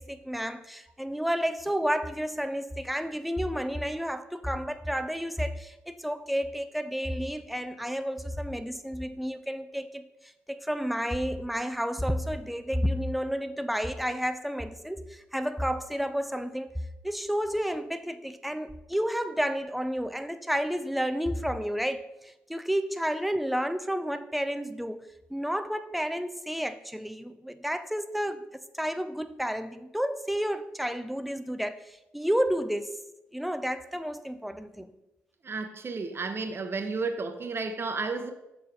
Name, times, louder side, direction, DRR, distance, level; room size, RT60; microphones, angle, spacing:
voice 1, 0.0-16.8 17.0-32.9 33.3-34.9, equal, ahead, 0.6 m, -31 dB
voice 2, 35.4-38.3, right 4 dB, 40° right, 0.9 m, -32 dB
6.7 x 4.1 x 5.0 m
hypercardioid pair, 50°, 6 cm